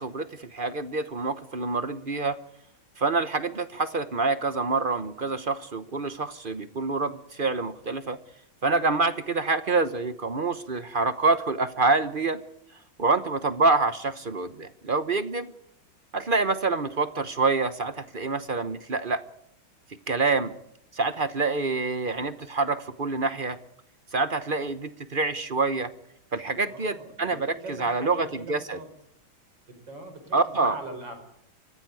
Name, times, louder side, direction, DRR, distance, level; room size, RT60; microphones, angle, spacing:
voice 1, 0.0-2.4 3.0-8.2 8.6-12.4 13.0-15.5 16.1-19.2 20.1-20.5 20.9-23.6 24.1-25.9 26.3-28.8 30.3-30.8, right 3 dB, 40° right, 13 dB, 0.7 m, -26 dB
voice 2, 26.7-28.9 29.7-31.1, right 2 dB, 65° right, 6 dB, 5.3 m, -42 dB
24.0 x 15.0 x 9.6 m, 0.75 s
omnidirectional pair, 2.2 m